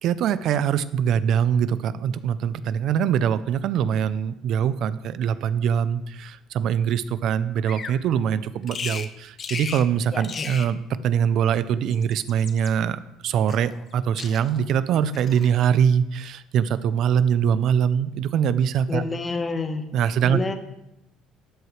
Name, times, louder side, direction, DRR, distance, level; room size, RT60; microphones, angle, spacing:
voice 1, 0.0-10.8 11.0-19.0 19.9-20.4, right 8 dB, 60° right, 15 dB, 0.5 m, -23 dB
Bird vocalization bird call bird song, 7.6-8.0 8.7-9.1 9.4-9.9 10.2-10.7 11.7-12.7 13.5-13.9 14.2-14.7 15.1-15.5, left 6 dB, 35° left, 0.7 m, -35 dB
voice 2, 10.1-10.5 18.9-19.9 20.2-20.5, left 3 dB, 20° left, 7 dB, 1.1 m, -28 dB
12.5 x 7.8 x 3.2 m, 0.85 s
cardioid pair, 115°, 0 cm